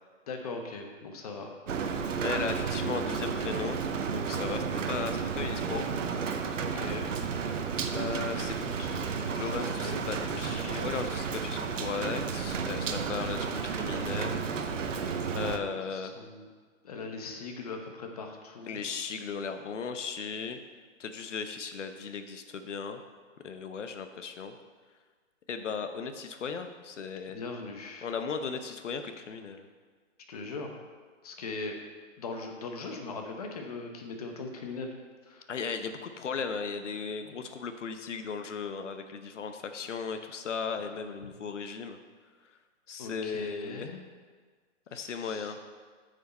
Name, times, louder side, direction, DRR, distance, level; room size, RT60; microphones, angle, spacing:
voice 1, 0.3-1.5 6.6-7.1 8.3-10.8 15.3-16.5 16.8-18.8 27.3-28.1 30.3-30.7 31.2-31.8 32.2-35.0 35.2-35.5 37.2-37.3 41.2-41.3 43.0-44.0 44.9-45.5, left 3 dB, 30° left, 3 dB, 0.9 m, -40 dB
Rain, 1.7-15.6, right 6 dB, 70° right, 0.9 m, -32 dB
voice 2, 2.2-3.8 4.1-5.9 7.9-8.5 9.3-14.4 15.3-16.2 18.7-20.6 21.0-23.0 23.4-24.6 25.5-27.4 28.0-29.6 35.5-42.0 42.9-44.0 44.9-45.6, left 5 dB, 65° left, 8 dB, 1.0 m, -36 dB
9.8 x 6.5 x 4.3 m, 1.6 s
hypercardioid pair, 160°, 39 cm